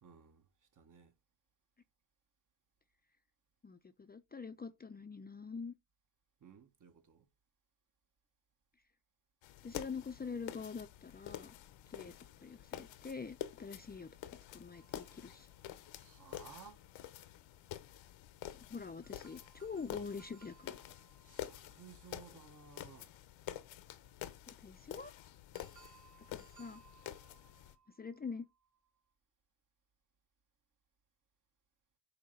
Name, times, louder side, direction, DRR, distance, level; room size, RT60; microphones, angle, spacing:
voice 1, 0.0-1.2 6.4-7.3 15.9-16.9 21.2-23.2, right 7 dB, 45° right, 1.3 m, -58 dB
voice 2, 3.6-5.7 9.6-11.5 11.9-14.1 14.5-15.5 18.6-20.8 24.5-25.1 26.3-26.8 28.0-28.5, left 5 dB, 20° left, 0.6 m, -45 dB
sound 1, 9.4-27.8, left 12 dB, 80° left, 1.0 m, -49 dB
sound 2, 14.7-16.4 19.0-22.9 25.5-29.0, right 7 dB, 75° right, 2.0 m, -66 dB
8.5 x 2.9 x 5.5 m
cardioid pair, 95°, 45 cm